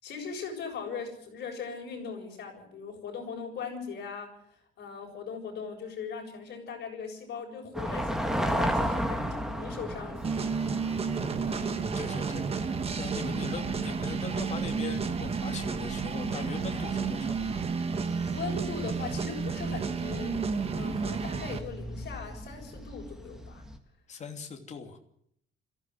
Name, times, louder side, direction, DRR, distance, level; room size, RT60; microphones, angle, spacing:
voice 1, 0.0-4.3 4.8-10.2 18.3-20.3 20.7-23.6, left 5 dB, 50° left, 1 dB, 7.4 m, -39 dB
sound 1, 7.7-23.8, equal, ahead, 1.8 m, -37 dB
sound 2, 10.2-21.6, right 5 dB, 30° right, 1.4 m, -31 dB
voice 2, 11.4-12.7 13.0-17.5 24.1-25.0, left 5 dB, 35° left, 3 dB, 2.9 m, -41 dB
22.0 x 15.5 x 8.0 m, 0.71 s
cardioid pair, 175°, 21 cm